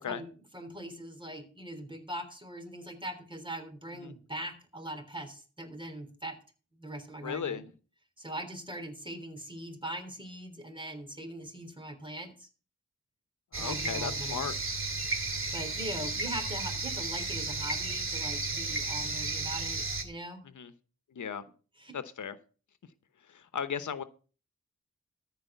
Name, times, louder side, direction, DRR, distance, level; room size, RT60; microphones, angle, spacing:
voice 1, 0.5-6.4 6.8-7.7 8.2-12.5 13.6-14.5 15.5-20.4 21.8-21.9, right 1 dB, 15° right, 3.3 m, -41 dB
voice 2, 7.2-7.6 13.5-14.5 20.5-20.7 21.1-21.4 21.9-22.4 23.3-24.0, left 7 dB, 80° left, 1.0 m, -36 dB
sound 1, 13.5-20.0, right 3 dB, 45° right, 2.3 m, -33 dB
14.0 x 5.0 x 8.0 m
wide cardioid pair, 70°, 30 cm